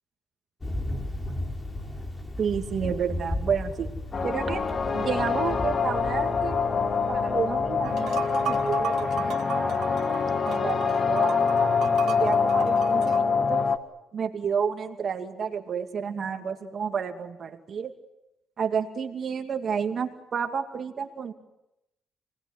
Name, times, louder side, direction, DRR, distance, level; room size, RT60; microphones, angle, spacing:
Thunder, 0.6-8.8, left 1 dB, 25° left, 4.5 m, -35 dB
voice 1, 2.4-3.9 4.2-4.6 4.9-6.6 7.1-9.8 10.5-13.7 14.1-17.9 18.6-21.3, right 7 dB, 50° right, 5 dB, 2.5 m, -31 dB
sound 1, 4.1-13.8, left 5 dB, 40° left, 1.7 m, -25 dB
sound 2, 7.8-13.2, right 11 dB, 75° right, 2.2 m, -37 dB
29.5 x 20.0 x 9.9 m, 0.88 s
cardioid pair, 105°, 0 cm